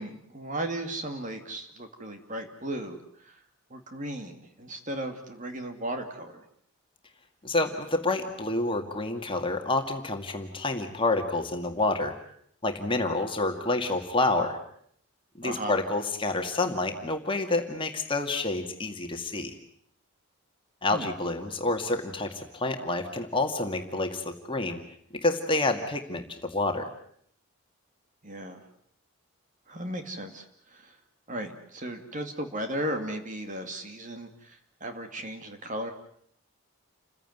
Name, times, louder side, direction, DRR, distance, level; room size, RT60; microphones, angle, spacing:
voice 1, 0.0-3.4 3.7-6.4 15.4-15.8 20.9-21.1 28.2-28.7 29.7-31.0 31.3-35.9, right 1 dB, 35° right, 6 dB, 2.5 m, -36 dB
voice 2, 7.4-12.2 12.6-14.6 15.4-19.5 20.8-24.8 25.1-26.9, left 2 dB, 25° left, 4 dB, 2.2 m, -28 dB
29.5 x 16.0 x 9.4 m, 0.66 s
head